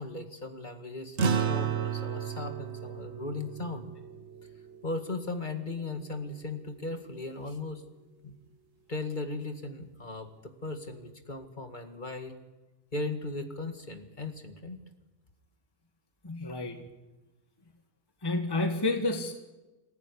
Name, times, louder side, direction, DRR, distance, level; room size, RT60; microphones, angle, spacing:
voice 1, 0.0-3.9 4.8-7.8 8.2-8.3 8.9-12.4 12.9-14.8, left 2 dB, 40° left, 7 dB, 2.1 m, -37 dB
sound 1, 1.2-5.8, right 6 dB, 65° right, 1.4 m, -33 dB
voice 2, 16.2-16.8 18.2-19.3, left 2 dB, 20° left, 5 dB, 1.5 m, -30 dB
26.5 x 15.5 x 9.9 m, 1.1 s
omnidirectional pair, 1.3 m